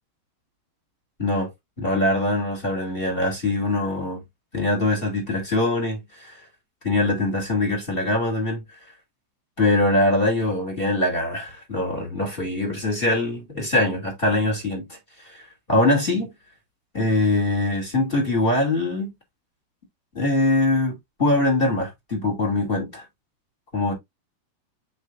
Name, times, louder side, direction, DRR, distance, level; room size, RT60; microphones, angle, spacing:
voice 1, 1.8-4.2 4.5-6.3 6.8-8.6 9.6-15.0 15.3-15.4 15.7-16.3 16.9-19.1 20.1-23.0 23.7-23.9, left 1 dB, 15° left, 1.9 m, -23 dB
7.4 x 5.3 x 2.6 m
omnidirectional pair, 5.2 m